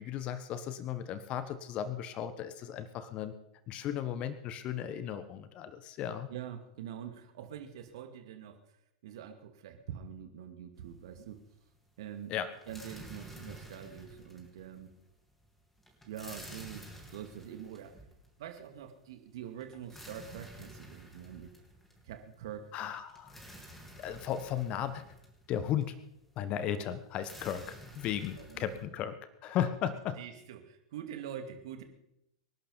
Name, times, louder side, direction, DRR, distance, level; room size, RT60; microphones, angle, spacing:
voice 1, 0.0-3.3 3.7-6.3 12.3-12.5 22.7-23.4 24.0-25.0 25.5-25.9 26.4-30.2, left 10 dB, 35° left, 12 dB, 1.3 m, -35 dB
voice 2, 6.3-8.6 9.0-11.4 12.0-12.3 12.7-14.9 16.0-16.9 17.1-18.0 18.4-21.5 22.0-22.7 28.4-28.8 30.2-31.8, right 9 dB, 55° right, 6 dB, 2.5 m, -45 dB
sound 1, 10.7-11.4 11.7-28.8, right 1 dB, 5° left, 3.9 m, -51 dB
26.0 x 11.5 x 4.2 m, 0.83 s
figure-of-eight pair, 95°, 3 cm